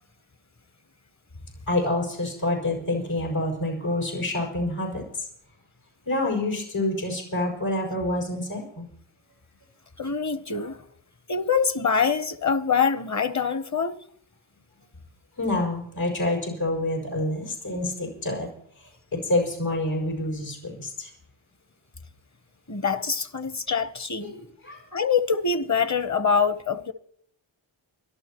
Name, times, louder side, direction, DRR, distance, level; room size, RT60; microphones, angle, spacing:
voice 1, 1.7-5.3 6.1-8.9 15.4-18.5 18.8-21.1 24.2-24.8, left 1 dB, 85° left, 5.8 m, -27 dB
voice 2, 10.0-10.8 11.3-14.0 22.7-24.3 24.9-26.9, left 6 dB, 35° left, 0.9 m, -24 dB
29.5 x 12.0 x 3.0 m
cardioid pair, 40°, 49 cm